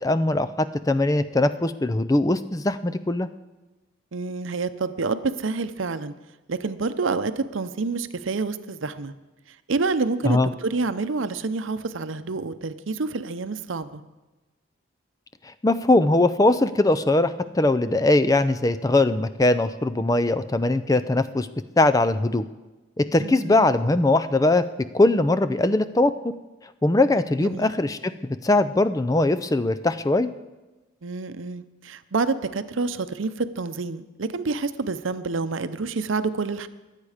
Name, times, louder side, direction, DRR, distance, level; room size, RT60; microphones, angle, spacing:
voice 1, 0.0-3.3 10.2-10.5 15.6-21.5 21.8-22.5 23.0-24.6 24.9-26.3 26.8-28.1 28.4-30.3, left 2 dB, 20° left, 12 dB, 0.4 m, -21 dB
voice 2, 4.1-6.1 6.5-9.1 9.7-14.0 23.2-23.7 27.4-27.7 31.0-36.7, right 4 dB, 85° right, 12 dB, 0.7 m, -28 dB
22.5 x 8.3 x 5.0 m, 1.1 s
head